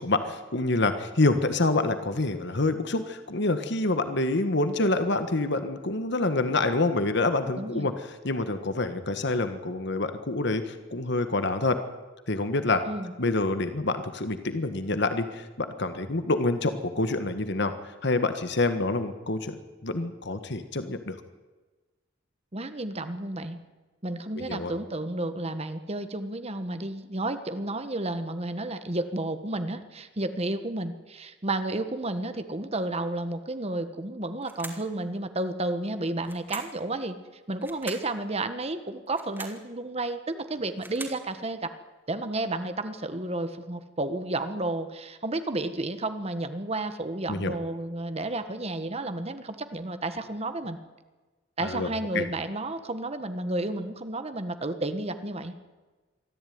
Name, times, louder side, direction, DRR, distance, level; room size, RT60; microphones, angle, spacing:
voice 1, 0.0-7.9 8.2-11.8 12.3-12.8 13.2-17.7 18.0-19.5 19.8-21.2 24.4-24.7 47.3-47.6 51.6-51.9 52.1-52.2, left 2 dB, 60° left, 9 dB, 1.6 m, -27 dB
voice 2, 7.6-7.9 12.8-13.1 22.5-23.6 24.0-37.2 37.5-41.7 42.1-50.8 51.6-55.5, right 2 dB, 35° right, 10 dB, 1.4 m, -32 dB
sound 1, 34.4-34.9 36.2-36.8 37.6-38.1 39.1-39.6 40.5-41.2, right 2 dB, 10° right, 2.9 m, -42 dB
23.5 x 14.5 x 9.5 m, 1.2 s
head